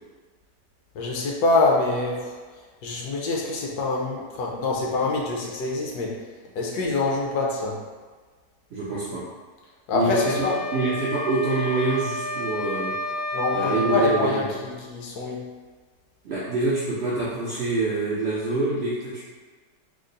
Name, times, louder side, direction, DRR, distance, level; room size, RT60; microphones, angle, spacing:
voice 1, 0.9-2.4 2.8-6.2 6.5-7.8 9.9-10.6 13.3-15.5, left 3 dB, 70° left, -2 dB, 1.1 m, -25 dB
voice 2, 8.7-9.2 9.9-12.9 13.5-14.5 16.2-19.2, right 3 dB, 65° right, -8 dB, 0.6 m, -26 dB
sound 1, 10.1-14.3, left 1 dB, 50° left, 0.6 m, -30 dB
3.6 x 2.0 x 3.8 m, 1.4 s
omnidirectional pair, 1.9 m